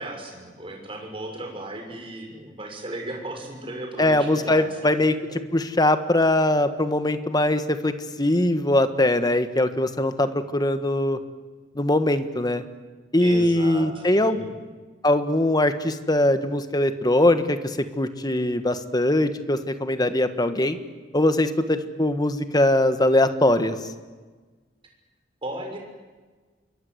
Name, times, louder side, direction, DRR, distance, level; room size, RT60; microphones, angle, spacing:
voice 1, 0.0-5.0 13.2-14.6 25.4-25.8, right 1 dB, 30° right, 2 dB, 6.5 m, -35 dB
voice 2, 4.0-5.1 5.5-11.2 11.7-12.6 13.1-14.5 15.0-20.8 21.1-23.9, left 1 dB, 20° left, 10 dB, 1.5 m, -21 dB
28.0 x 23.0 x 8.1 m, 1.4 s
head